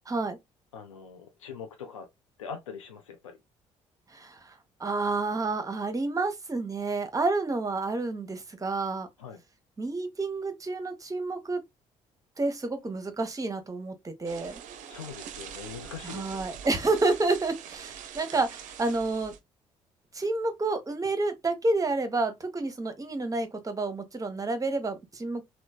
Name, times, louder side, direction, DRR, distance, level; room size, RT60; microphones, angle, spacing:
voice 1, 0.1-0.4 4.1-4.5 4.8-9.1 9.8-11.6 12.4-14.6 16.0-19.3 20.1-25.4, right 3 dB, 20° right, 0.7 m, -29 dB
voice 2, 0.7-2.1 2.4-3.4 9.2-9.4 14.9-16.4, left 6 dB, 85° left, 0.4 m, -42 dB
sound 1, 14.2-19.4, right 8 dB, 55° right, 0.5 m, -43 dB
3.0 x 2.1 x 2.2 m
figure-of-eight pair, 50°, 16 cm